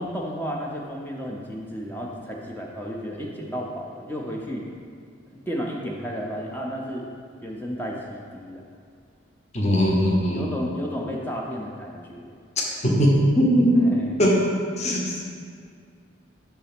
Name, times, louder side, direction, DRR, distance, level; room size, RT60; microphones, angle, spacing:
voice 1, 0.0-4.6 5.5-7.1 7.4-8.6 10.3-12.3 13.8-14.1, equal, 10° left, -2 dB, 0.5 m, -32 dB
voice 2, 9.5-10.5 12.8-13.9 14.2-14.4 14.8-15.2, equal, 35° left, -2 dB, 0.9 m, -20 dB
5.7 x 4.0 x 5.9 m, 2.2 s
head